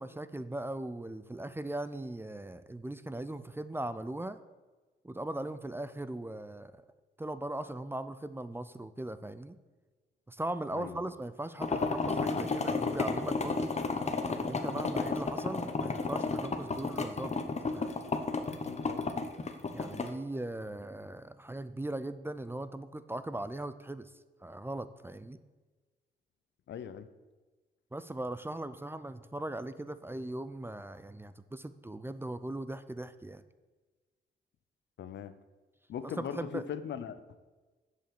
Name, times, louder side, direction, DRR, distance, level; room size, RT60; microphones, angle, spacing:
voice 1, 0.0-4.4 5.0-6.8 7.2-9.6 10.3-13.7 14.3-17.4 17.7-17.9 19.7-24.1 24.4-25.4 27.9-33.4 36.0-36.6, right 1 dB, 10° right, 0.5 m, -39 dB
voice 2, 10.7-11.1 18.6-19.1 26.7-27.1 35.0-35.3 35.9-37.2, left 8 dB, 70° left, 0.7 m, -40 dB
sound 1, 11.6-20.1, left 4 dB, 35° left, 1.1 m, -32 dB
7.7 x 7.0 x 6.8 m
cardioid pair, 70°, 19 cm